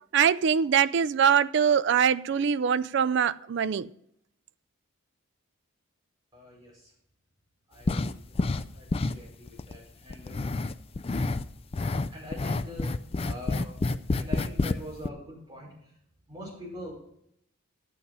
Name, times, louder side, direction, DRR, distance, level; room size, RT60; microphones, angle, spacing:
voice 1, 0.1-3.9, right 7 dB, 55° right, 0.3 m, -23 dB
voice 2, 6.3-6.9 7.7-8.3 8.7-10.5 12.1-12.9 13.2-13.7 14.1-15.9 16.3-16.9, left 1 dB, 20° right, 5.7 m, -43 dB
sound 1, 7.9-8.7 8.9-9.8 10.1-11.4 11.7-14.8 15.0-15.1, left 3 dB, 25° left, 0.4 m, -28 dB
11.0 x 8.5 x 5.5 m
head